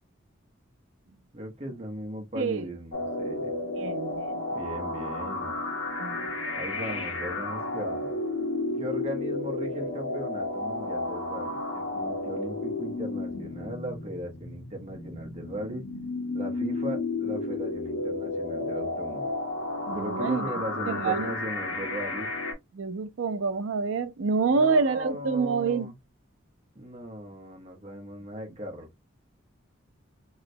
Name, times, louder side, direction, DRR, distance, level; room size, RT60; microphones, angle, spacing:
voice 1, 1.3-3.6 4.5-5.5 6.5-8.1 8.8-15.8 16.3-19.3 19.9-22.3 24.5-25.9 26.7-28.9, equal, 30° right, 0.8 m, -38 dB
voice 2, 2.4-2.7 3.7-4.4 6.0-6.9 19.9-20.5 20.9-21.3 22.7-25.9, right 4 dB, 65° right, 0.4 m, -27 dB
sound 1, 2.9-22.5, left 2 dB, 75° left, 1.3 m, -32 dB
3.1 x 2.8 x 2.6 m
head